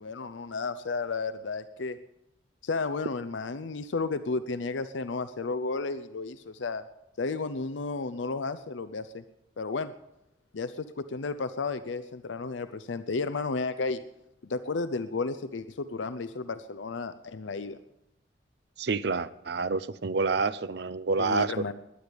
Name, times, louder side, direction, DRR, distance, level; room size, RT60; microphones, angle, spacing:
voice 1, 0.0-2.0 2.6-6.8 7.2-9.2 9.6-9.9 10.5-14.0 14.4-17.8 21.2-21.7, left 3 dB, 75° left, 0.6 m, -33 dB
voice 2, 18.8-21.7, right 4 dB, 60° right, 0.6 m, -28 dB
21.5 x 9.9 x 5.2 m
head